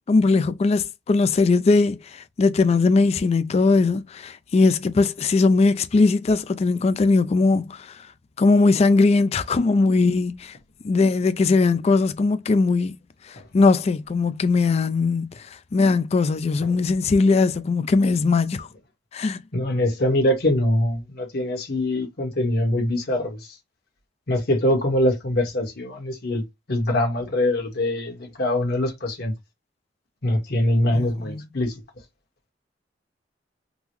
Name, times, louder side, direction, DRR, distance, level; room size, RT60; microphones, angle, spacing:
voice 1, 0.1-8.0 8.4-10.6 10.8-13.0 13.3-18.7 19.1-19.4 30.9-31.5, left 3 dB, 35° left, 0.3 m, -20 dB
voice 2, 19.5-23.4 24.3-26.4 26.7-29.3 30.2-31.7, left 1 dB, 60° left, 1.1 m, -23 dB
3.7 x 2.0 x 3.0 m
head